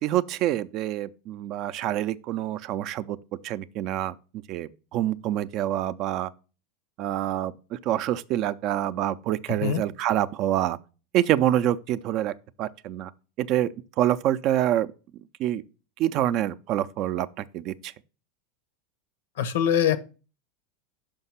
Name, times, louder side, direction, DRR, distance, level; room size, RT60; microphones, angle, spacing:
voice 1, 0.0-3.2 3.4-4.1 4.5-6.3 7.0-10.8 11.1-12.3 12.6-13.1 13.4-13.7 14.0-14.9 15.4-15.6 16.0-17.9, right 12 dB, 50° right, 0.4 m, -26 dB
voice 2, 9.5-9.8 19.4-20.0, left 9 dB, 75° left, 0.8 m, -23 dB
5.7 x 5.2 x 5.6 m
hypercardioid pair, 95°, 0 cm